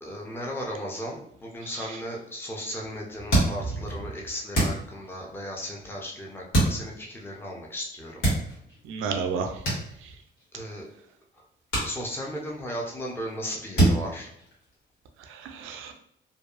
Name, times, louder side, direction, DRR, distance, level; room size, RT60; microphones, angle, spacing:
voice 1, 0.0-8.2 10.5-10.9 11.8-14.3, equal, 10° left, -1 dB, 0.6 m, -36 dB
voice 2, 1.6-2.0 3.7-3.9 8.8-9.6 10.0-10.1 15.2-15.9, right 5 dB, 85° right, 5 dB, 0.4 m, -33 dB
sound 1, 3.3-4.0 4.5-5.3 6.5-7.2 8.1-8.8 9.6-10.5 10.8-11.0 11.7-12.6 12.9-13.3 13.8-14.9, right 2 dB, 80° left, 1.5 m, -26 dB
2.6 x 2.3 x 2.4 m, 0.73 s
cardioid pair, 90°, 20 cm